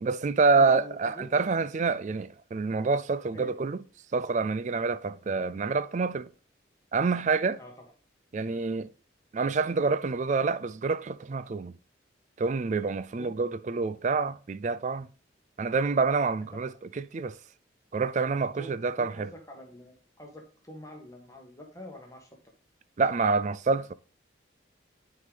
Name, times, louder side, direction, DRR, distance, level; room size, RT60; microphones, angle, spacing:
voice 1, 0.0-3.8 4.1-6.3 6.9-7.6 8.3-8.9 9.3-11.7 12.4-15.1 15.6-16.7 17.0-17.4 17.9-19.3 23.0-23.9, right 4 dB, 40° right, 0.3 m, -27 dB
voice 2, 0.5-1.7 3.3-3.5 7.6-7.9 13.2-13.4 16.5-16.8 18.6-22.3, equal, 15° left, 1.4 m, -46 dB
9.4 x 3.8 x 5.0 m
head